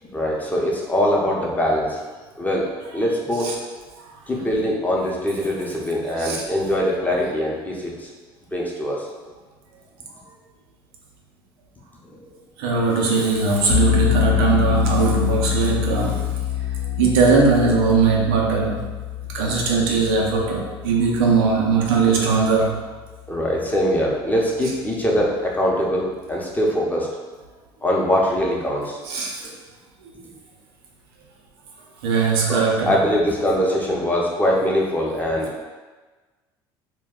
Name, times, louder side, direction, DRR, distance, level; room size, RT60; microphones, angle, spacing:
voice 1, 0.0-2.0 2.4-2.7 2.9-3.6 4.3-8.1 8.5-9.0 12.0-12.3 23.3-27.1 27.8-29.0 29.4-29.5 32.5-35.5, equal, 15° left, -3 dB, 0.7 m, -22 dB
voice 2, 12.6-16.3 17.0-18.9 19.3-22.9 29.0-29.4 30.0-30.2 32.0-33.0, right 4 dB, 85° right, -2 dB, 0.5 m, -20 dB
sound 1, 13.7-22.6, left 12 dB, 75° left, 0.5 m, -25 dB
2.2 x 2.2 x 3.6 m, 1.3 s
supercardioid pair, 75°, 12 cm